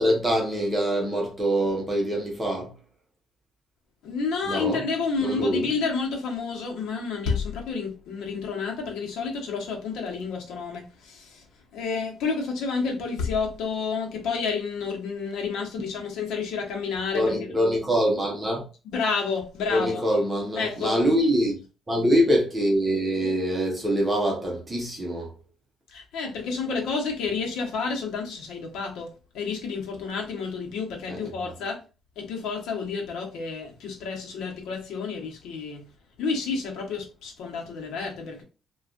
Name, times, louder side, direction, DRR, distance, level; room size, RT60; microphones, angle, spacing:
voice 1, 0.0-2.7 4.4-4.8 5.2-5.7 17.1-18.6 19.7-21.6 21.9-25.3 31.1-31.5, equal, 15° right, 0.9 m, -24 dB
voice 2, 4.0-11.4 11.7-17.2 18.8-20.1 20.6-21.0 25.9-29.1 29.3-31.8 32.2-35.9 36.2-38.4, left 5 dB, 85° left, 0.9 m, -30 dB
3.3 x 2.4 x 2.5 m
cardioid pair, 150°, 0 cm